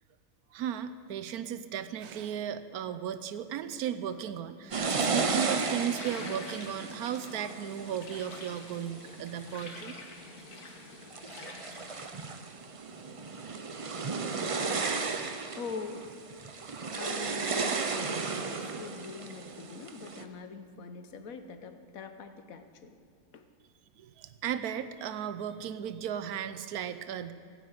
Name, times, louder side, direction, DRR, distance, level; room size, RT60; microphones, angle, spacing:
voice 1, 0.5-10.0 24.0-27.3, right 9 dB, 85° right, 11 dB, 1.2 m, -35 dB
sound 1, 4.7-9.4 10.0-10.6 11.0-20.2, right 4 dB, 45° right, 0.4 m, -34 dB
sound 2, 4.8-12.1, left 3 dB, 90° left, 1.9 m, -47 dB
voice 2, 15.5-16.1 17.0-23.0 23.3-23.5, left 5 dB, 70° left, 8 dB, 1.3 m, -43 dB
16.5 x 9.4 x 8.0 m, 2.3 s
omnidirectional pair, 1.6 m